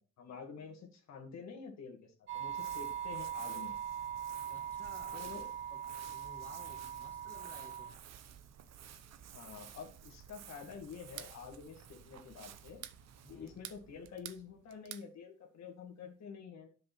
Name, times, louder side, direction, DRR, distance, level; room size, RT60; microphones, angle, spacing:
voice 1, 0.0-3.8 5.1-5.5 9.3-12.8 13.3-16.7, left 6 dB, 60° left, 2.2 m, -48 dB
sound 1, 2.3-7.9, right 9 dB, 35° right, 2.1 m, -41 dB
Crumpling crinkling, 2.3-14.8, right 9 dB, 60° right, 1.0 m, -54 dB
voice 2, 4.5-5.3 5.7-8.0 13.2-13.7, left 2 dB, 5° left, 1.8 m, -57 dB
sound 2, 10.9-11.4 12.6-13.0 13.5-14.4 14.7-15.1, right 12 dB, 85° right, 0.9 m, -47 dB
7.9 x 6.5 x 6.0 m
cardioid pair, 125°, 30 cm